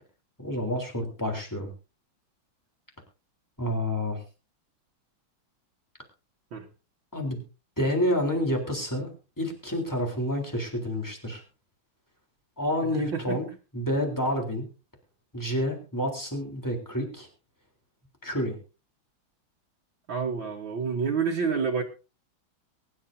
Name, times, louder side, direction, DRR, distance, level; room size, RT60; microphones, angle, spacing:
voice 1, 0.4-1.7 3.6-4.2 7.1-7.4 7.8-11.4 12.6-13.5 13.7-14.7 15.3-17.3 18.2-18.6, equal, 10° left, 3.6 m, -29 dB
voice 2, 13.1-13.4 20.1-21.8, right 5 dB, 70° right, 2.1 m, -28 dB
23.0 x 11.0 x 2.7 m
omnidirectional pair, 2.2 m